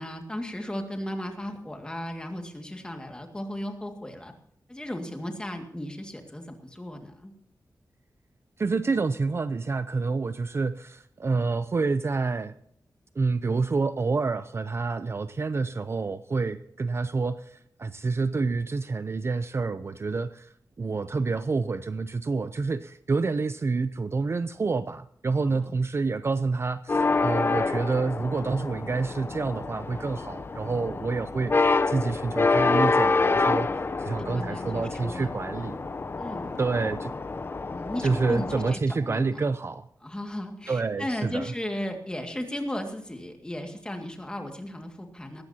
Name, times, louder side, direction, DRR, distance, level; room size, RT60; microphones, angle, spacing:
voice 1, 0.0-4.3 4.7-7.3 25.4-25.8 34.0-35.7 36.2-36.5 37.7-39.4 40.0-45.4, left 1 dB, 10° left, 4 dB, 2.0 m, -36 dB
voice 2, 8.6-12.5 13.2-33.7 34.0-35.8 36.6-37.1 38.0-39.9 40.7-41.5, right 4 dB, 35° right, 12 dB, 0.5 m, -28 dB
sound 1, 26.9-38.8, left 3 dB, 35° left, 0.7 m, -27 dB
19.0 x 15.5 x 2.8 m, 0.69 s
wide cardioid pair, 160°, 7 cm